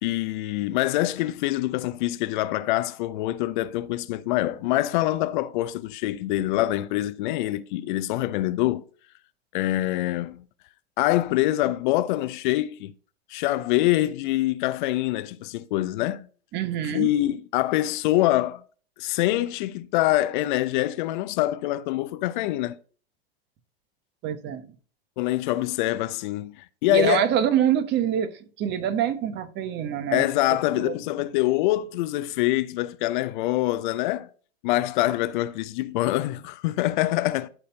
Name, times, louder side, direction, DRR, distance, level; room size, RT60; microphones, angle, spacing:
voice 1, 0.0-8.8 9.5-10.4 11.0-12.9 13.3-16.3 16.8-18.6 19.0-22.8 25.2-27.2 30.1-34.3 34.6-37.5, left 16 dB, 50° left, 0.7 m, -25 dB
voice 2, 16.5-17.1 24.2-24.7 26.9-28.3 28.6-30.3 30.8-30.9, right 9 dB, 35° right, 1.1 m, -25 dB
11.5 x 4.2 x 4.0 m
hypercardioid pair, 100°, 31 cm